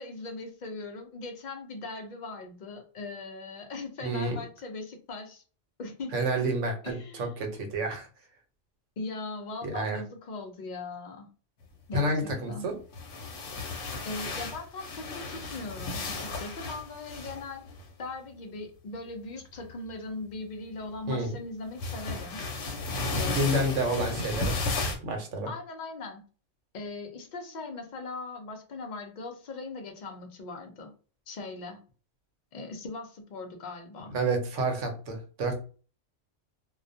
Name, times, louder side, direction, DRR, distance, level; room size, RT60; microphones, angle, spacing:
voice 1, 0.0-5.4 5.8-6.2 6.8-7.3 9.0-11.3 11.9-12.7 14.0-17.6 18.0-22.4 23.1-24.1 25.5-26.2 26.7-30.9 31.3-31.8 32.5-34.1, left 3 dB, 60° left, 4 dB, 0.5 m, -40 dB
voice 2, 4.0-4.4 6.1-7.0 7.4-8.1 9.6-10.0 11.9-12.7 21.1-21.3 23.3-24.6 25.0-25.5 34.1-35.6, right 1 dB, 80° right, 4 dB, 1.0 m, -29 dB
sound 1, 12.8-17.9 19.6-19.9 21.8-25.0, left 3 dB, 85° left, 1.0 m, -34 dB
2.3 x 2.2 x 2.5 m, 0.38 s
omnidirectional pair, 1.3 m